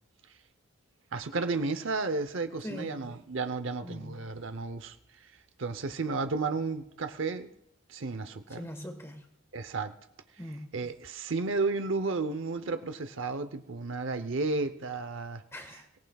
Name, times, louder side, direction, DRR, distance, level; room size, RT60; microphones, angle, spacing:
voice 1, 1.1-5.0 5.2-5.3 5.6-7.5 7.9-8.7 9.5-9.9 10.7-15.4, right 3 dB, 65° right, 0.8 m, -32 dB
voice 2, 2.6-3.1 3.8-4.2 8.6-9.3 10.4-10.7 15.5-15.9, equal, 10° left, 1.5 m, -41 dB
23.0 x 18.5 x 2.4 m
head